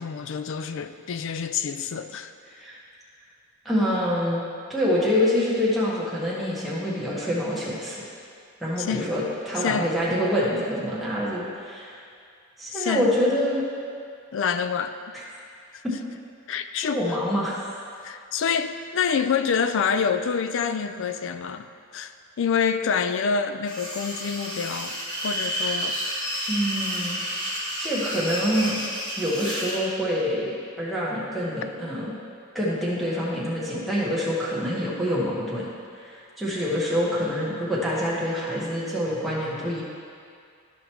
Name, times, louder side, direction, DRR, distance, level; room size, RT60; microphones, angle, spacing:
voice 1, 0.0-2.3 8.8-9.1 9.6-9.9 12.7-13.1 14.3-14.9 15.7-15.8 16.5-17.2 18.0-21.7 21.9-22.1 22.4-25.0 25.2-26.2, left 6 dB, 60° left, 10 dB, 0.4 m, -27 dB
voice 2, 3.6-4.4 4.7-8.0 8.6-12.0 12.6-13.6 15.8-15.9 16.8-17.6 26.5-27.2 27.8-28.8 29.2-32.1 32.5-35.7 36.0-39.8, equal, ahead, -8 dB, 1.4 m, -26 dB
sound 1, 23.7-29.8, equal, 20° left, 1.3 m, -30 dB
12.0 x 5.2 x 3.1 m, 2.3 s
head